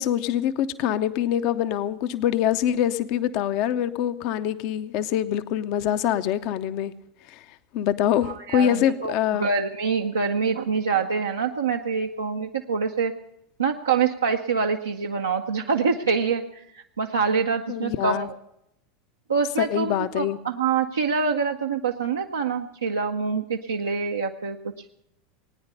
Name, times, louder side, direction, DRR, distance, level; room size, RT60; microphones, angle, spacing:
voice 1, 0.0-6.9 7.3-7.4 7.7-9.5 17.7-18.3 19.6-20.4, left 10 dB, 55° left, 11 dB, 0.6 m, -24 dB
voice 2, 8.2-9.1 9.4-13.1 13.6-18.3 19.3-24.7, right 5 dB, 85° right, 2 dB, 0.6 m, -25 dB
19.0 x 9.6 x 6.7 m, 0.79 s
hypercardioid pair, 85°, 0 cm